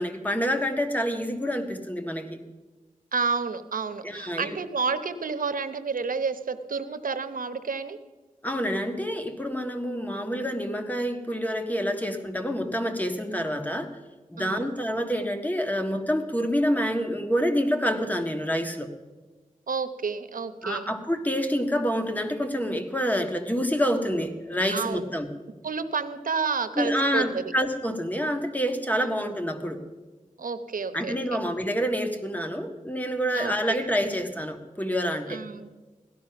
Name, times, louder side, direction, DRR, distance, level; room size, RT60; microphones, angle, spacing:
voice 1, 0.0-2.4 4.0-4.6 8.4-13.9 14.3-18.9 20.6-25.3 26.8-29.8 30.9-35.4, equal, 10° left, 6 dB, 1.6 m, -27 dB
voice 2, 3.1-8.0 13.3-13.5 14.4-14.6 19.7-20.9 24.7-25.1 25.6-27.5 29.0-29.2 30.4-31.4 33.3-33.8 35.3-35.7, right 5 dB, 85° right, 10 dB, 0.9 m, -30 dB
17.0 x 12.0 x 5.8 m, 1.2 s
wide cardioid pair, 60°, 14 cm